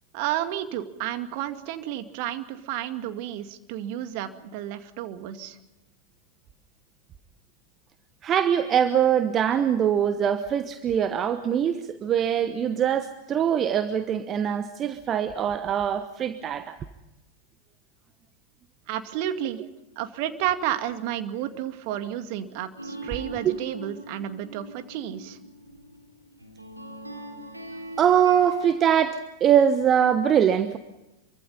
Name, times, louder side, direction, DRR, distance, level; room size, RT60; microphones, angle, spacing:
voice 1, 0.1-5.6 18.9-19.6 20.0-25.4, right 11 dB, 45° right, 8 dB, 2.2 m, -31 dB
voice 2, 8.2-16.8 23.4-23.6 28.0-30.8, right 9 dB, 30° right, 11 dB, 1.2 m, -23 dB
sound 1, 22.8-28.8, right 1 dB, 85° right, 3.4 m, -41 dB
26.5 x 24.5 x 5.5 m, 0.97 s
figure-of-eight pair, 90°, 0 cm